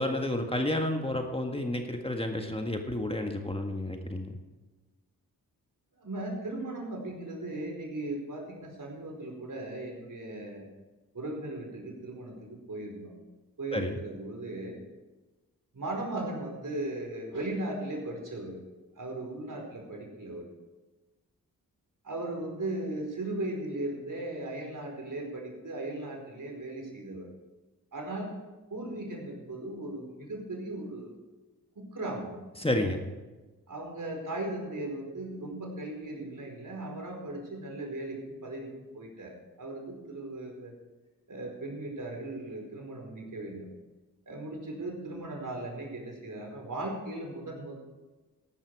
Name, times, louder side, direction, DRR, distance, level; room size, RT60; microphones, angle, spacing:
voice 1, 0.0-4.4 13.7-13.9 32.6-33.0, left 1 dB, 15° left, 3 dB, 1.7 m, -30 dB
voice 2, 6.0-10.7 11.1-13.1 13.6-14.8 15.7-18.6 19.0-20.4 22.0-27.3 27.9-28.3 28.7-31.2 31.7-32.3 33.7-38.7 38.9-40.7 41.3-43.7 44.3-47.8, right 2 dB, 55° right, 1 dB, 4.8 m, -37 dB
15.0 x 11.5 x 4.8 m, 1.2 s
cardioid pair, 45°, 38 cm